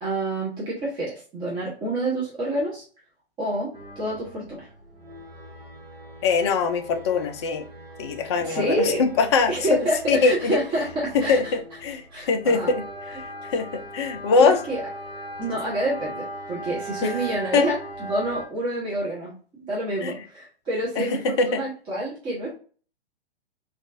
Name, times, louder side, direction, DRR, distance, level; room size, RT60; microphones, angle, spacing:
voice 1, 0.0-2.8 3.4-4.7 8.4-9.0 9.5-11.8 12.1-12.7 13.1-13.2 14.4-14.8 15.4-22.5, right 1 dB, 15° right, -5 dB, 0.7 m, -28 dB
sound 1, 3.7-18.5, right 1 dB, 70° right, 1.2 m, -39 dB
voice 2, 6.2-7.6 8.0-9.5 10.1-10.6 11.3-12.8 13.5-14.6 17.0-17.1 17.5-17.7 20.0-20.1 21.0-21.1 21.4-21.6, left 4 dB, 30° left, 6 dB, 0.4 m, -22 dB
3.7 x 2.3 x 2.5 m, 0.41 s
figure-of-eight pair, 115°, 31 cm